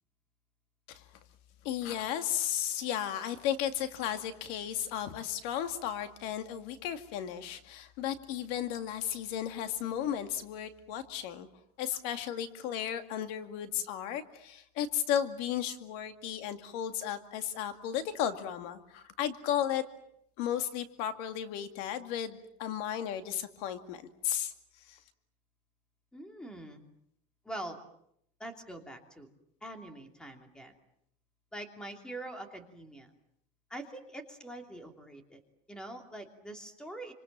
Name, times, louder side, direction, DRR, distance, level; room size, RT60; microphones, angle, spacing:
voice 1, 1.6-11.5 11.8-19.8 20.4-24.5 24.9-25.0, left 10 dB, 70° left, 8 dB, 2.3 m, -34 dB
voice 2, 26.1-26.8 27.4-27.8 28.4-29.3 29.6-30.7 31.5-33.1 33.7-35.4 35.7-37.1, right 1 dB, 5° left, 5 dB, 2.9 m, -44 dB
27.0 x 26.5 x 7.5 m, 0.74 s
cardioid pair, 165°, 16 cm